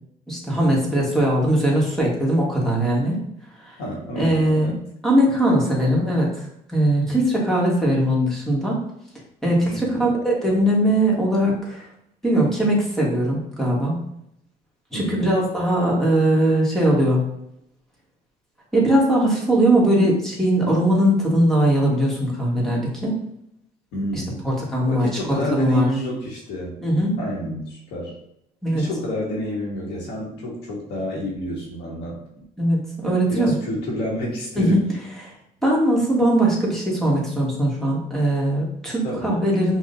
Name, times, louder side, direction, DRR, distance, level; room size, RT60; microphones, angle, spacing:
voice 1, 0.3-3.2 3.7-3.8 4.2-4.7 5.0-6.4 6.7-8.8 9.4-11.8 12.2-14.0 14.9-17.2 18.7-23.1 24.1-25.9 26.8-27.2 28.6-28.8 32.6-33.5 34.5-34.8 35.2-35.3 35.6-39.8, right 1 dB, ahead, -4 dB, 1.5 m, -20 dB
voice 2, 3.8-4.8 9.7-10.0 14.9-15.3 23.9-24.4 24.9-26.8 27.2-28.1 28.7-32.2 33.3-34.8 39.0-39.4, equal, 85° left, -3 dB, 1.5 m, -29 dB
6.1 x 2.5 x 2.6 m, 0.76 s
cardioid pair, 110°, 17 cm